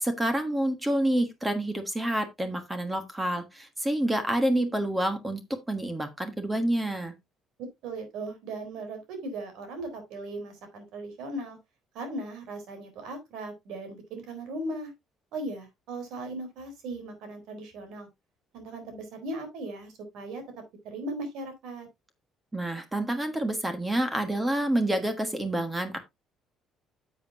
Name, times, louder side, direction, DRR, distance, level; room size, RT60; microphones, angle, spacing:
voice 1, 0.0-7.1 22.5-26.0, right 1 dB, 10° right, 1.3 m, -28 dB
voice 2, 7.8-11.6 11.9-14.9 15.3-18.1 18.5-20.4 20.8-21.9, right 2 dB, 80° right, 3.8 m, -38 dB
10.0 x 7.4 x 2.7 m
cardioid pair, 130°, 0 cm